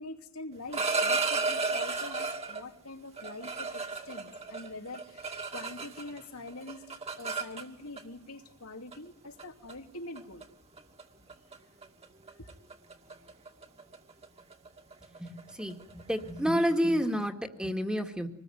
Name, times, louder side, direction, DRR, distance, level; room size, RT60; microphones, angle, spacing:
voice 1, 0.0-10.4 12.4-12.5, left 2 dB, 85° left, 2.8 m, -44 dB
sound 1, 0.5-2.6 3.2-6.2 6.5-8.0 8.9-9.1 9.4-9.7 10.2-10.4 10.8-11.0 11.3-11.6 11.8-17.2, right 4 dB, 30° right, 2.5 m, -34 dB
voice 2, 15.2-18.3, equal, 5° right, 2.1 m, -29 dB
26.0 x 20.5 x 9.4 m
head